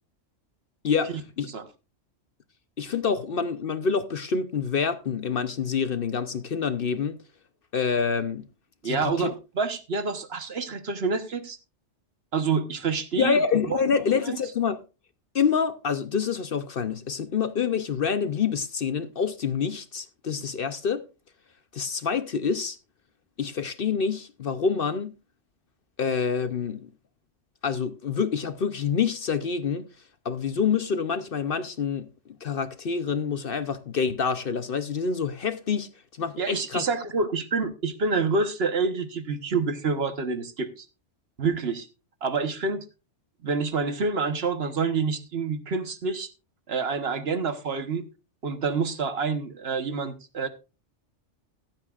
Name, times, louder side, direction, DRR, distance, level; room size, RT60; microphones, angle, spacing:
voice 1, 0.8-1.5 2.8-7.2 7.7-8.5 8.8-9.3 13.2-14.8 15.3-21.0 21.7-22.8 23.4-25.1 26.0-26.9 27.6-29.9 30.2-32.1 32.4-35.9 36.2-36.8, left 6 dB, 55° left, 0.8 m, -27 dB
voice 2, 8.8-9.3 9.6-11.6 12.3-13.4 13.7-13.8 14.2-14.4 36.4-40.9 41.4-41.9 42.2-42.8 43.4-46.3 46.7-48.0 48.4-50.5, right 4 dB, 55° right, 1.3 m, -27 dB
15.0 x 12.0 x 2.4 m
omnidirectional pair, 1.3 m